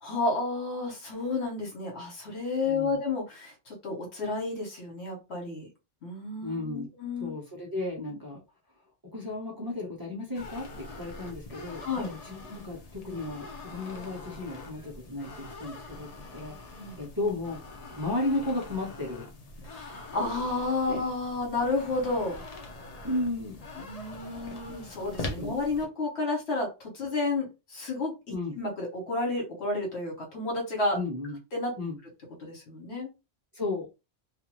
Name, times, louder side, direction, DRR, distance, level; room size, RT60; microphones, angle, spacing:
voice 1, 0.0-5.7 6.0-7.3 11.8-12.1 16.8-17.0 19.6-22.4 23.8-28.1 28.5-31.0 31.5-31.7 32.4-33.1, left 3 dB, 70° left, 0 dB, 1.3 m, -31 dB
voice 2, 2.6-3.0 6.4-6.9 7.2-8.4 9.1-16.7 17.0-17.6 18.0-19.3 20.9-21.0 23.0-23.7 25.3-25.5 28.3-28.5 30.9-31.4 31.8-32.0 33.5-33.9, left 2 dB, 20° right, -4 dB, 0.8 m, -34 dB
sound 1, 10.3-25.9, left 2 dB, 45° left, 0.6 m, -43 dB
2.5 x 2.5 x 3.0 m, 0.27 s
omnidirectional pair, 1.2 m